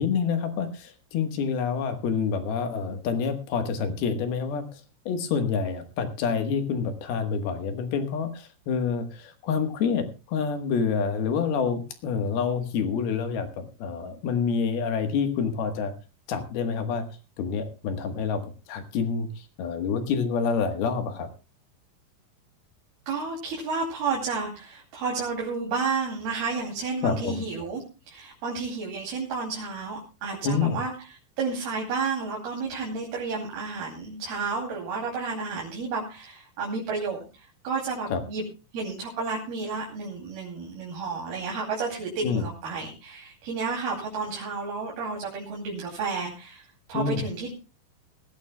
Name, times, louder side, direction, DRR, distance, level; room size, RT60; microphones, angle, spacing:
voice 1, 0.0-4.7 5.1-15.9 16.3-17.0 17.4-18.4 18.7-21.3 27.0-27.4 30.4-30.8 38.1-38.2 42.2-42.4 46.9-47.3, left 6 dB, 70° left, 7 dB, 3.0 m, -27 dB
voice 2, 23.1-31.1 31.4-38.4 38.7-47.5, right 4 dB, 65° right, -2 dB, 4.5 m, -31 dB
20.0 x 15.5 x 2.2 m, 0.31 s
omnidirectional pair, 5.0 m